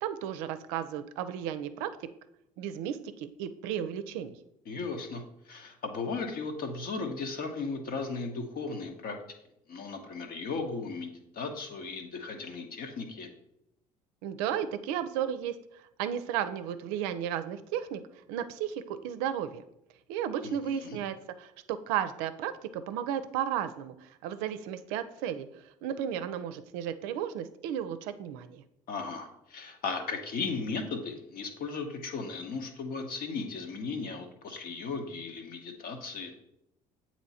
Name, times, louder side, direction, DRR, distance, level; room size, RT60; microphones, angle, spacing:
voice 1, 0.0-1.9 2.6-4.4 14.2-15.6 16.0-18.0 18.3-19.6 20.1-23.9 24.2-25.5 25.8-28.6, right 9 dB, 70° right, 11 dB, 0.5 m, -34 dB
voice 2, 4.7-9.2 9.7-13.3 20.4-21.0 28.9-36.3, left 4 dB, 55° left, 4 dB, 1.0 m, -36 dB
7.9 x 3.0 x 4.1 m, 0.82 s
hypercardioid pair, 60°, 19 cm